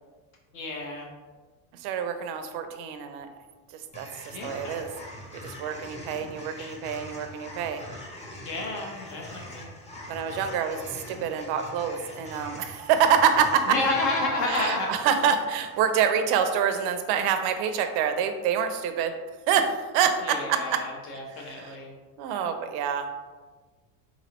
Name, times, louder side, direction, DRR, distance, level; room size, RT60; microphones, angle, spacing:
voice 1, 0.5-1.1 4.3-4.8 6.6-6.8 8.4-9.7 13.7-14.9 20.2-21.9, left 2 dB, 60° left, 0 dB, 1.2 m, -30 dB
voice 2, 1.7-3.3 3.7-4.9 5.3-7.8 10.1-13.8 14.5-19.1 19.5-20.8 21.3-21.8 22.2-23.1, right 7 dB, 50° right, 8 dB, 0.5 m, -26 dB
sound 1, 3.9-16.2, left 1 dB, 15° left, 0.6 m, -43 dB
3.9 x 3.0 x 2.9 m, 1.4 s
hypercardioid pair, 95°, 50 cm